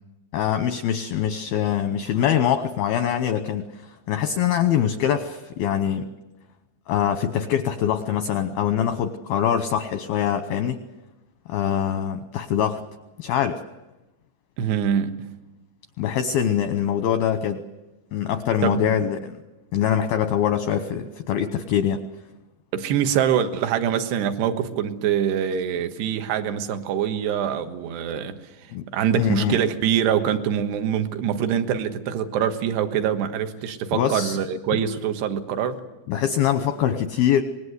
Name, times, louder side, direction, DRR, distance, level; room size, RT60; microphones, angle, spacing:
voice 1, 0.3-6.1 6.9-10.8 11.5-12.8 13.2-13.6 16.0-17.6 18.1-19.4 19.7-22.0 28.7-28.9 29.2-29.6 33.9-34.4 34.7-34.8 36.1-37.4, left 9 dB, 80° left, 9 dB, 2.2 m, -23 dB
voice 2, 14.6-15.3 18.6-18.9 22.7-28.4 28.9-35.8, right 9 dB, 70° right, 8 dB, 3.2 m, -24 dB
25.5 x 21.0 x 8.0 m, 1.0 s
omnidirectional pair, 5.5 m